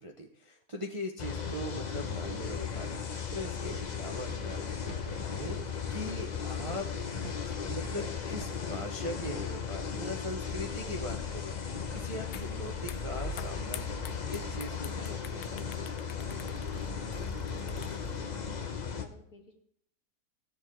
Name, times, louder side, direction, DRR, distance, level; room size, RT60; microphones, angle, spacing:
voice 1, 0.0-2.9 3.3-6.9 7.2-16.1, equal, 30° right, 0 dB, 0.6 m, -41 dB
sound 1, 1.2-19.0, left 6 dB, 40° left, 0.6 m, -36 dB
sound 2, 2.6-2.7 2.9-9.3, right 5 dB, 70° right, 2.0 m, -52 dB
sound 3, 12.3-12.5 12.8-18.2, left 10 dB, 85° left, 0.6 m, -47 dB
voice 2, 17.6-19.6, left 3 dB, 60° left, 1 dB, 2.2 m, -53 dB
15.5 x 7.2 x 3.7 m, 0.70 s
omnidirectional pair, 1.8 m